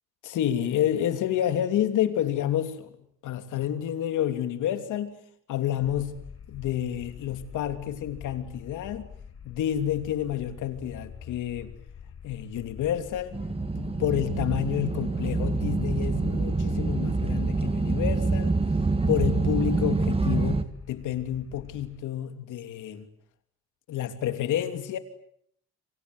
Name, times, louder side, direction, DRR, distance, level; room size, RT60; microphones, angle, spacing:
voice 1, 0.2-2.9 3.2-5.2 5.5-6.1 6.5-9.1 9.4-11.7 12.2-13.4 13.8-18.6 19.1-23.1 23.9-25.0, left 11 dB, 80° left, 3.1 m, -29 dB
sound 1, 5.8-22.0, left 7 dB, 50° left, 5.7 m, -46 dB
sound 2, 13.3-20.6, right 3 dB, 20° right, 2.0 m, -26 dB
28.5 x 26.0 x 8.0 m
cardioid pair, 90°, 30 cm